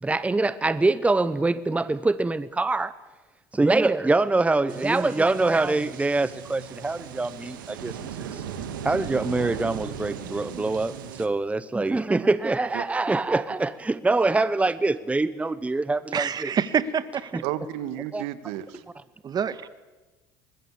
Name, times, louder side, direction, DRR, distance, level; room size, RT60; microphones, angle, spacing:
voice 1, 0.0-2.9 3.5-8.4 8.8-10.9 11.2-16.5 17.3-17.4 18.1-18.2, right 3 dB, 10° right, 0.9 m, -24 dB
sound 1, 4.7-11.3, right 8 dB, 90° right, 1.9 m, -37 dB
voice 2, 16.1-17.4 19.2-19.7, right 7 dB, 40° right, 1.6 m, -26 dB
voice 3, 17.4-18.8, right 12 dB, 75° right, 1.6 m, -32 dB
24.0 x 20.5 x 8.5 m
hypercardioid pair, 80°, 11 cm